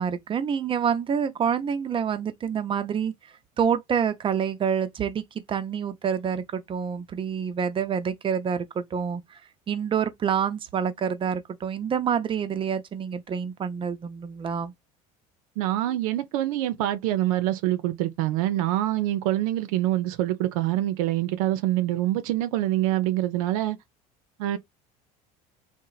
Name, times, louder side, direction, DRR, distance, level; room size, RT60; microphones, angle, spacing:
voice 1, 0.0-3.1 3.6-9.4 9.7-14.7, right 7 dB, 30° right, 0.5 m, -27 dB
voice 2, 15.6-23.8 24.4-24.6, right 14 dB, 80° right, 0.5 m, -25 dB
2.9 x 2.0 x 2.3 m
supercardioid pair, 95°, 18 cm